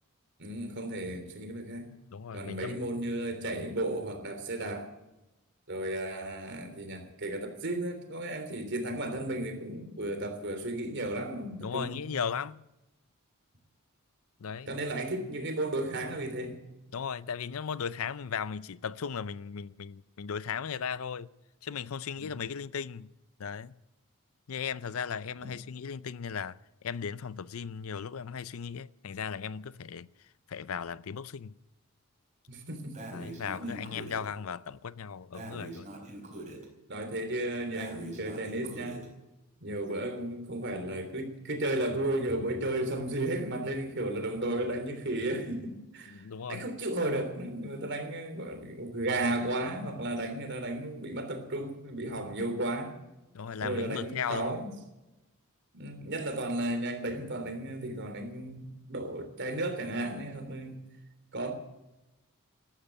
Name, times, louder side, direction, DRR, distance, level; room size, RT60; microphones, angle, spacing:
voice 1, 0.4-1.9 2.3-4.9 5.7-12.0 14.7-16.6 22.2-22.4 25.4-25.5 32.5-33.1 33.6-33.8 36.9-39.1 39.6-52.9 53.6-54.7 55.7-60.8 61.3-61.5, right 1 dB, 55° right, 3.3 m, -34 dB
voice 2, 2.1-2.9 11.6-12.7 14.4-14.7 16.9-21.3 21.6-23.1 23.4-23.7 24.5-30.1 30.5-31.5 33.1-35.9 46.1-46.7 53.3-54.6, left 7 dB, 70° left, 0.5 m, -37 dB
Breathing, 32.9-34.3 35.3-36.7 37.7-39.1, right 2 dB, 35° right, 4.5 m, -43 dB
13.5 x 13.0 x 8.2 m
head